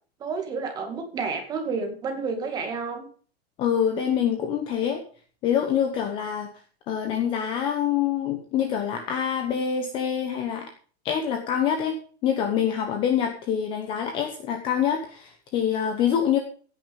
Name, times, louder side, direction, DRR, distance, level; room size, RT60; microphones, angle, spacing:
voice 1, 0.2-3.1, right 4 dB, 10° right, 4 dB, 2.2 m, -30 dB
voice 2, 3.6-5.0 5.4-6.5 6.9-10.6 11.0-11.9 12.2-16.4, left 8 dB, 15° left, 6 dB, 1.1 m, -25 dB
16.5 x 9.5 x 5.3 m, 0.44 s
supercardioid pair, 180°, 32 cm